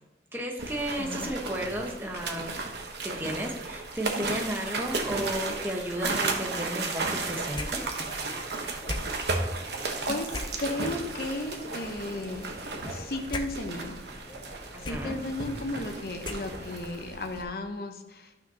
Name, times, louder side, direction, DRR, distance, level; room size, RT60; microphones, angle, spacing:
voice 1, 0.3-2.6 3.0-7.8 14.7-15.2, equal, 10° right, 0 dB, 1.1 m, -33 dB
sound 1, 0.6-17.4, right 3 dB, 75° right, 1.1 m, -34 dB
voice 2, 1.0-1.3 10.1-12.5 12.9-14.0 14.8-18.3, left 2 dB, 55° left, 5 dB, 0.9 m, -34 dB
sound 2, 7.5-16.9, left 2 dB, 25° left, 0.6 m, -42 dB
12.5 x 5.9 x 2.9 m, 1.0 s
head